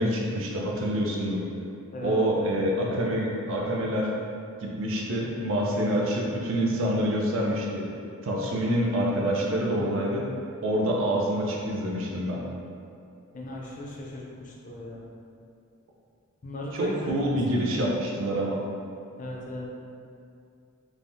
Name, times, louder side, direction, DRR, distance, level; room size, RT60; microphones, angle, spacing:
voice 1, 0.0-1.4 2.0-4.1 4.6-7.8 8.2-10.2 10.6-12.4 16.7-18.6, equal, 65° right, -2 dB, 0.5 m, -26 dB
voice 2, 13.3-15.1 16.4-17.6 19.2-19.7, left 1 dB, 35° left, -3 dB, 0.4 m, -37 dB
3.3 x 2.2 x 2.6 m, 2.5 s
head